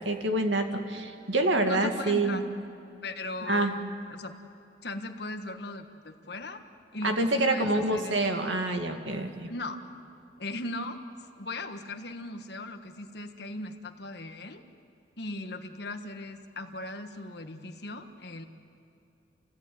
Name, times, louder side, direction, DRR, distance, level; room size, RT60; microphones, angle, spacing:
voice 1, 0.0-2.4 3.5-3.7 7.0-9.5, right 2 dB, 80° right, 5 dB, 2.1 m, -27 dB
voice 2, 1.6-2.4 3.0-3.8 4.1-4.3 4.8-6.6 6.9-8.5 9.5-9.8 10.4-14.6 15.2-18.4, left 2 dB, 60° left, 6 dB, 1.5 m, -38 dB
29.5 x 17.0 x 9.4 m, 2.6 s
head